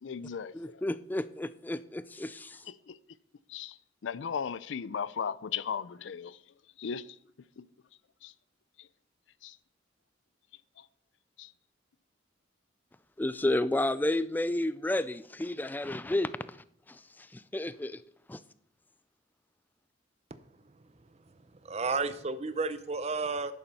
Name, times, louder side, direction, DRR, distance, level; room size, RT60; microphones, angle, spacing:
voice 1, 0.0-0.8 2.7-3.0 3.5-6.4 6.8-7.2 7.6-7.7 8.2-8.3 8.8-8.9 9.4-9.6 10.8-10.9 11.4-11.5, left 7 dB, 75° left, 0.4 m, -37 dB
voice 2, 0.5-2.6 13.2-16.6 16.9-18.0 18.3-18.4, left 1 dB, 10° left, 0.3 m, -31 dB
voice 3, 21.6-23.5, right 4 dB, 35° right, 0.6 m, -32 dB
10.0 x 7.0 x 5.4 m
head